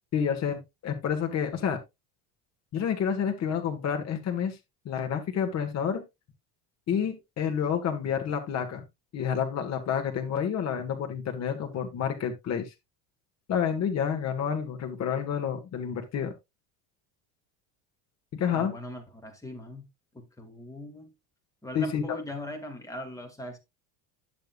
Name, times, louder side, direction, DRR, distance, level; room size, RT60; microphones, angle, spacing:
voice 1, 0.1-1.8 2.7-4.6 4.8-6.0 6.9-8.8 9.1-12.7 13.5-16.3 18.3-18.7 21.7-22.0, left 7 dB, 40° left, 1.7 m, -29 dB
voice 2, 18.5-19.8 20.1-21.1 21.6-23.6, left 1 dB, 10° left, 2.3 m, -40 dB
10.5 x 7.0 x 2.4 m
cardioid pair, 135°, 41 cm